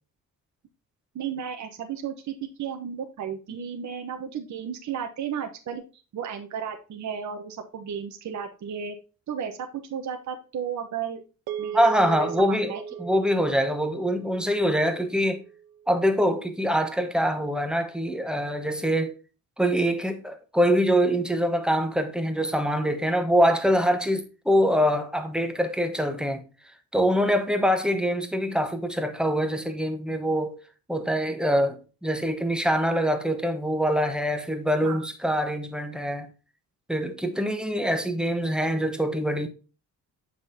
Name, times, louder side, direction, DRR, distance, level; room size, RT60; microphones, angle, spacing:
voice 1, 1.1-9.0 9.3-11.2 11.6-13.0 34.8-35.1, right 7 dB, 55° right, 0.9 m, -34 dB
sound 1, 11.5-16.0, right 9 dB, 85° right, 0.9 m, -38 dB
voice 2, 11.7-12.7 13.0-15.4 15.9-19.2 19.6-26.4 26.9-30.6 30.9-36.3 36.9-39.5, equal, ahead, 1.0 m, -24 dB
7.1 x 6.1 x 2.7 m
cardioid pair, 110°, 34 cm